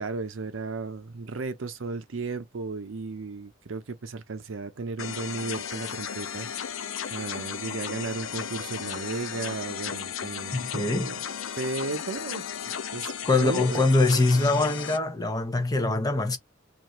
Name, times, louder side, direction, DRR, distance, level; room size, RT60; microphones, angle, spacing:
voice 1, 0.0-6.5 7.1-11.2 11.6-12.4 12.9-13.8, right 3 dB, 75° right, 0.6 m, -34 dB
sound 1, 5.0-15.0, left 8 dB, 80° left, 0.5 m, -35 dB
voice 2, 10.5-11.1 13.3-16.4, left 2 dB, 20° left, 0.6 m, -23 dB
2.6 x 2.5 x 3.1 m
head